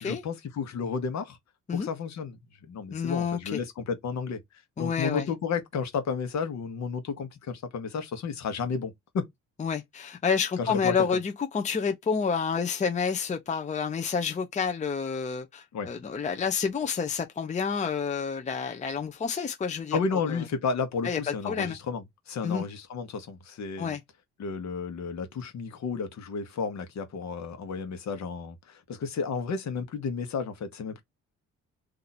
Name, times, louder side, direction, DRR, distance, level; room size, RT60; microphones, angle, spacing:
voice 1, 0.0-1.4 1.7-4.4 4.8-9.3 10.6-11.1 15.7-15.9 19.9-23.9 24.4-31.0, left 5 dB, 65° left, 1.2 m, -32 dB
voice 2, 2.9-3.6 4.8-5.3 9.6-20.4 21.0-21.8 22.4-22.6 23.8-24.0, left 6 dB, 25° left, 0.6 m, -29 dB
2.8 x 2.6 x 4.1 m
cardioid pair, 90°, 30 cm